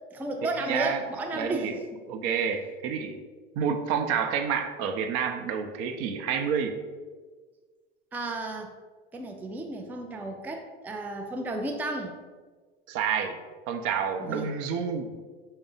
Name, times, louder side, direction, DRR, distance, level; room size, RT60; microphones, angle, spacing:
voice 1, 0.1-2.0 8.1-8.7 9.1-12.1 14.2-14.5, right 2 dB, 5° right, 3 dB, 0.3 m, -33 dB
voice 2, 0.7-1.0 1.3-1.8 2.1-3.3 3.6-6.8 12.9-13.4 13.7-15.2, right 7 dB, 55° right, 6 dB, 0.5 m, -29 dB
4.9 x 2.0 x 3.8 m, 1.4 s
hypercardioid pair, 85°, 29 cm